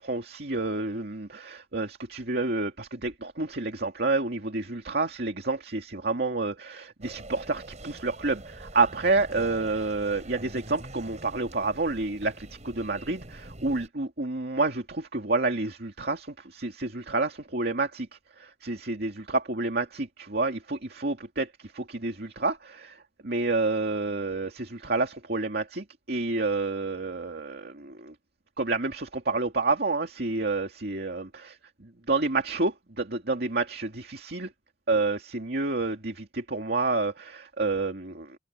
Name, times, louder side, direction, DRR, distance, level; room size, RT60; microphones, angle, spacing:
voice 1, 0.0-18.1 18.4-28.1 28.6-34.5 34.9-38.4, right 3 dB, 60° right, 2.4 m, -29 dB
sound 1, 7.0-13.9, right 1 dB, 40° right, 5.3 m, -45 dB
head